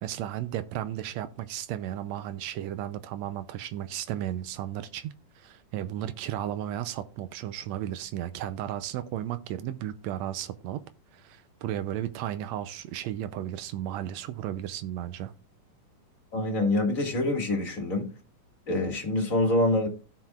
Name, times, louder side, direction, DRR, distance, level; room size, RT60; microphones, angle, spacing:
voice 1, 0.0-10.8 11.1-15.3, right 12 dB, 85° right, 1.6 m, -34 dB
voice 2, 16.3-18.1 18.7-19.9, left 1 dB, 30° left, 1.8 m, -25 dB
16.0 x 5.8 x 2.4 m
omnidirectional pair, 3.7 m